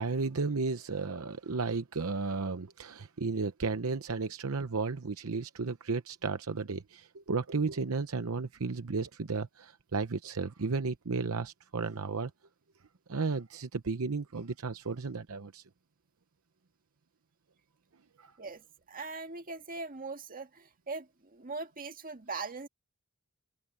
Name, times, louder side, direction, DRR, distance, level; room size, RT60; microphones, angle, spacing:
voice 1, 0.0-12.3 13.1-15.6 18.2-18.3, right 4 dB, 70° right, 0.8 m, -33 dB
voice 2, 18.4-22.7, right 3 dB, 40° right, 1.8 m, -41 dB
head